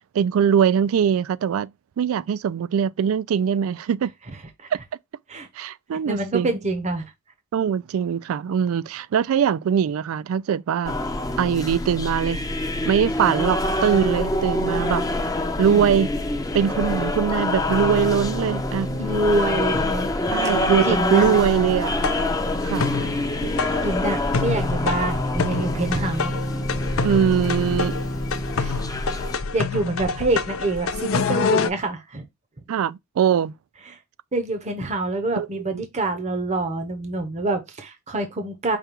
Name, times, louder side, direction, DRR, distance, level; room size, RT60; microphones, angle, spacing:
voice 1, 0.0-1.7 2.0-4.1 5.6-6.5 7.5-10.9 11.4-12.4 12.8-15.0 15.6-16.1 16.5-18.9 20.3-21.9 22.6-22.9 27.0-28.0 28.6-28.7 32.7-33.5 35.4-35.5, right 8 dB, 75° right, 0.3 m, -22 dB
voice 2, 6.0-7.0 15.6-15.9 18.9-20.4 20.8-21.3 23.4-26.4 28.6-28.7 29.5-32.2 33.9-34.0 34.3-38.8, right 2 dB, 35° right, 0.7 m, -26 dB
sound 1, 10.8-29.4, left 1 dB, 15° left, 0.6 m, -26 dB
sound 2, 22.0-31.7, left 5 dB, 70° left, 0.5 m, -27 dB
5.1 x 2.3 x 4.4 m
head